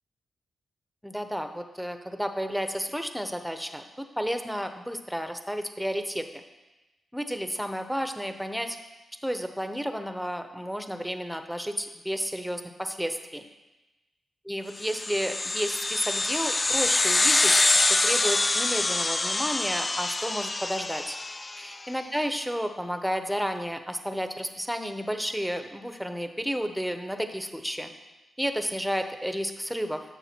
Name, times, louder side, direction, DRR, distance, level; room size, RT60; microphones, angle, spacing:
voice 1, 1.0-6.4 7.1-8.8 9.2-13.4 14.4-21.2 21.6-27.9 28.4-30.0, equal, ahead, 7 dB, 0.8 m, -32 dB
sound 1, 14.8-21.7, left 2 dB, 30° left, 0.4 m, -25 dB
10.0 x 6.7 x 4.4 m, 1.1 s
cardioid pair, 65°, 0 cm